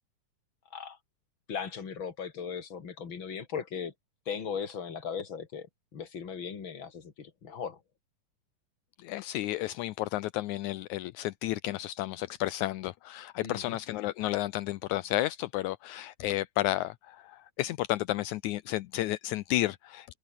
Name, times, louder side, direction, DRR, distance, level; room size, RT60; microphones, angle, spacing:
voice 1, 1.5-3.9 4.3-5.7 5.9-7.8 13.4-13.8, left 6 dB, 40° left, 3.2 m, -38 dB
voice 2, 9.0-20.2, left 16 dB, 80° left, 2.0 m, -32 dB
omnidirectional pair, 3.6 m